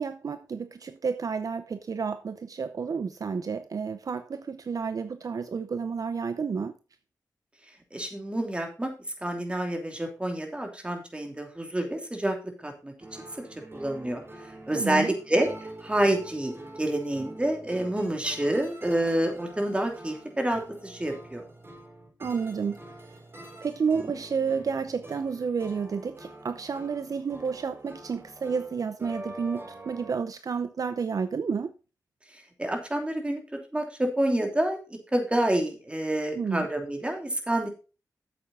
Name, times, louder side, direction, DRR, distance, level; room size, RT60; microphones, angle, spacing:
voice 1, 0.0-6.7 14.7-15.2 22.2-23.2 23.6-31.7 36.4-36.7, right 5 dB, 60° right, 0.6 m, -31 dB
voice 2, 7.9-8.9 9.2-12.9 13.7-14.2 14.7-15.5 15.8-16.5 16.8-21.4 32.6-33.4 33.7-37.7, right 1 dB, 15° right, 2.8 m, -28 dB
sound 1, 13.0-30.1, right 1 dB, 35° right, 4.8 m, -45 dB
8.7 x 7.7 x 4.1 m
cardioid pair, 70°, 7 cm